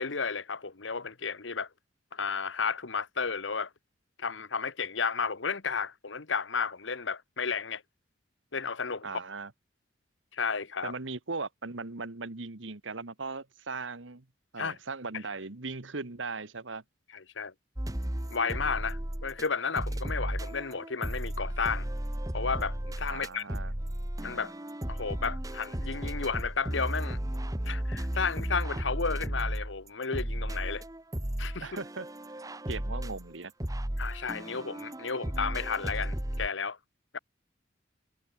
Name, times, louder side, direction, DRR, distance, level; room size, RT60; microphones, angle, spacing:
voice 1, 0.0-1.7 2.1-3.7 4.2-7.8 8.5-9.2 10.3-10.9 14.6-14.8 17.1-17.5 18.3-21.9 22.3-23.5 24.2-24.5 24.9-27.2 27.7-30.8 31.4-31.7 34.0-36.8 37.1-37.2, left 5 dB, 75° left, 1.3 m, -33 dB
voice 2, 9.0-9.5 10.8-14.2 14.5-16.8 23.1-23.7 31.6-32.1 32.7-33.5, right 3 dB, 80° right, 1.5 m, -38 dB
sound 1, 17.8-19.5 19.8-36.5, right 1 dB, 20° right, 1.3 m, -34 dB
head